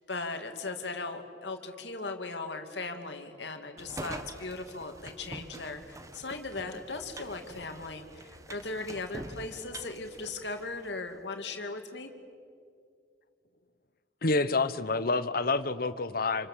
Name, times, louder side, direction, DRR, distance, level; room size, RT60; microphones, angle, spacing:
voice 1, 0.1-12.1, left 3 dB, 70° left, 5 dB, 2.5 m, -38 dB
sound 1, 3.8-11.0, right 1 dB, 20° right, 1.1 m, -45 dB
voice 2, 14.2-16.5, left 3 dB, 55° left, 13 dB, 1.0 m, -28 dB
28.0 x 28.0 x 7.5 m, 2.3 s
head